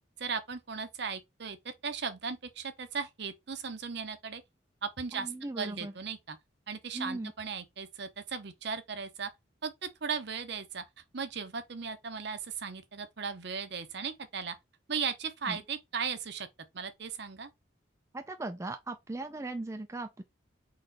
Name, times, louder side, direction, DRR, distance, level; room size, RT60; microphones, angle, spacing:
voice 1, 0.2-4.4 4.8-6.4 6.7-9.3 9.6-10.8 11.1-14.6 14.9-16.5 16.7-17.5, right 6 dB, 60° right, 0.8 m, -37 dB
voice 2, 5.1-5.9 6.9-7.3 15.5-15.6 18.1-20.2, right 2 dB, 15° right, 0.4 m, -38 dB
4.1 x 3.1 x 4.0 m
head